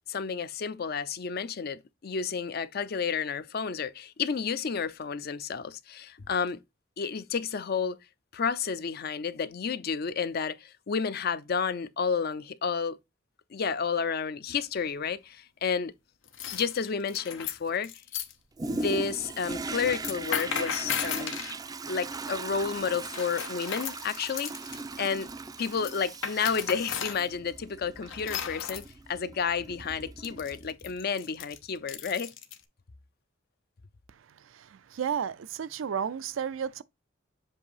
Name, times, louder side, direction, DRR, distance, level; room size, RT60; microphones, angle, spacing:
voice 1, 0.1-6.6 7.0-8.0 8.3-13.0 13.5-15.9 16.5-17.9 18.7-21.3 21.9-25.3 25.6-32.3, left 6 dB, 50° left, 0.5 m, -31 dB
sound 1, 14.5-14.9 16.2-18.3 19.9-21.6 23.1-24.8 25.6-27.2 28.1-28.9 30.2-32.6, left 8 dB, 85° left, 0.8 m, -36 dB
Toilet flush, 18.6-31.0 31.5-31.6, right 3 dB, 20° right, 0.3 m, -39 dB
voice 2, 34.5-36.8, right 7 dB, 85° right, 0.4 m, -32 dB
7.5 x 2.7 x 4.7 m
head